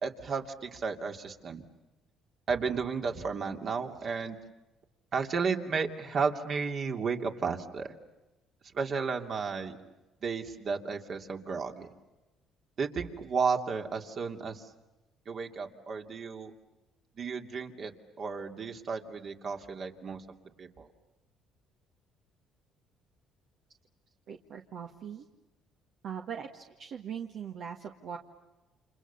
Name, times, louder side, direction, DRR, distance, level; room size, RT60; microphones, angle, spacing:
voice 1, 0.0-1.6 2.5-4.4 5.1-7.9 8.7-9.8 10.2-11.9 12.8-14.7 15.3-16.5 17.2-20.2 20.6-20.9, right 5 dB, 50° right, 4 dB, 2.7 m, -33 dB
voice 2, 24.3-25.2 26.0-28.2, right 7 dB, 65° right, 3 dB, 1.8 m, -40 dB
30.0 x 27.5 x 7.0 m, 1.1 s
cardioid pair, 95°, 0 cm